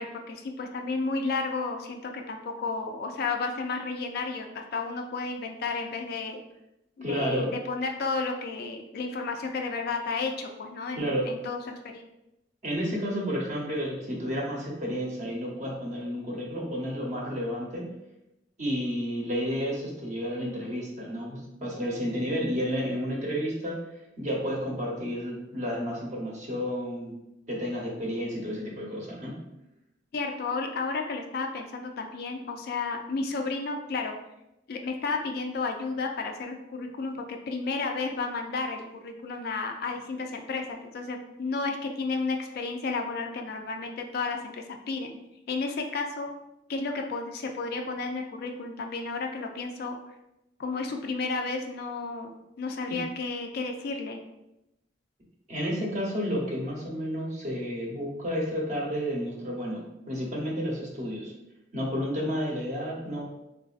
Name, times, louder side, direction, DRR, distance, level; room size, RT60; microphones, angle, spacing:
voice 1, 0.0-6.4 7.0-11.6 11.9-12.0 30.1-34.1 34.7-45.2 45.5-46.3 46.7-50.0 50.6-52.3 52.6-54.2, left 4 dB, 55° left, 3 dB, 0.4 m, -32 dB
voice 2, 7.0-7.5 10.9-11.3 12.6-17.9 18.6-23.8 24.2-27.2 27.5-29.4 52.9-53.0 55.5-61.3 61.7-63.2, equal, 40° right, -2 dB, 0.8 m, -31 dB
3.8 x 2.5 x 2.4 m, 0.90 s
head